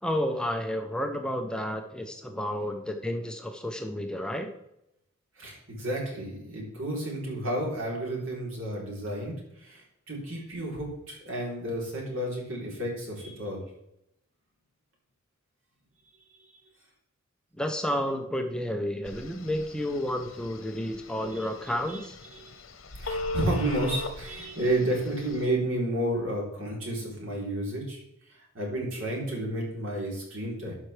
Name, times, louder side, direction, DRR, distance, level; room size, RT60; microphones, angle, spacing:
voice 1, 0.0-4.5 17.6-22.2, equal, 5° left, 4 dB, 0.7 m, -31 dB
voice 2, 5.4-13.6 16.4-16.5 21.9-22.0 22.3-22.5 22.9-30.8, right 1 dB, 75° right, -2 dB, 3.4 m, -31 dB
Telephone, 19.0-25.4, left 2 dB, 80° left, 1.0 m, -39 dB
12.0 x 5.8 x 3.3 m, 0.82 s
head